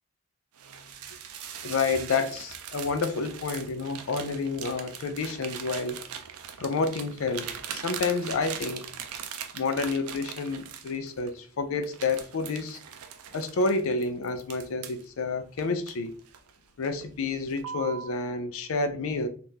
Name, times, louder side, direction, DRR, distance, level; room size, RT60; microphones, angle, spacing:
sound 1, 0.6-11.3 11.8-15.0 15.6-16.5 16.8-17.1 17.6-18.1, right 8 dB, 85° right, 0.4 m, -40 dB
voice 1, 1.6-6.0 6.6-8.9 9.5-12.8 13.3-16.1 16.8-19.3, left 4 dB, 70° left, 0.4 m, -29 dB
3.5 x 2.4 x 2.7 m
head